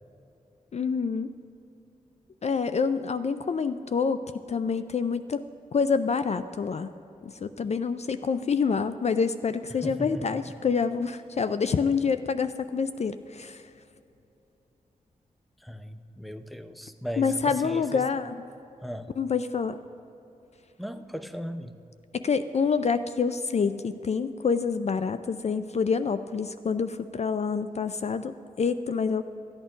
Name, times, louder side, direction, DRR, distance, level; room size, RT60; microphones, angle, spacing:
voice 1, 0.7-1.3 2.4-4.2 4.5-5.5 5.7-6.9 7.2-13.6 17.2-18.4 19.2-19.8 22.1-29.2, left 5 dB, 50° left, 11 dB, 0.4 m, -27 dB
voice 2, 9.8-10.3 15.6-18.0 18.8-19.1 20.8-21.8, equal, ahead, 10 dB, 0.7 m, -37 dB
14.0 x 8.7 x 5.2 m, 2.9 s
cardioid pair, 60°, 14 cm